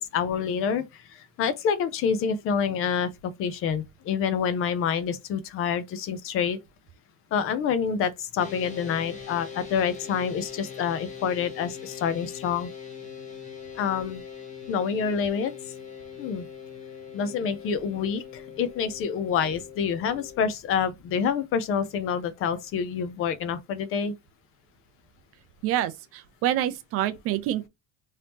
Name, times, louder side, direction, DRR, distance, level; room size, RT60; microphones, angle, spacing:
voice 1, 0.0-6.6 7.3-12.7 13.8-14.2 14.7-15.5 16.2-16.4 17.1-24.1, left 7 dB, 40° left, 0.5 m, -27 dB
sound 1, 8.4-20.5, left 7 dB, 20° left, 0.9 m, -42 dB
voice 2, 25.6-27.7, right 12 dB, 45° right, 0.4 m, -27 dB
2.9 x 2.7 x 3.4 m
cardioid pair, 160°, 33 cm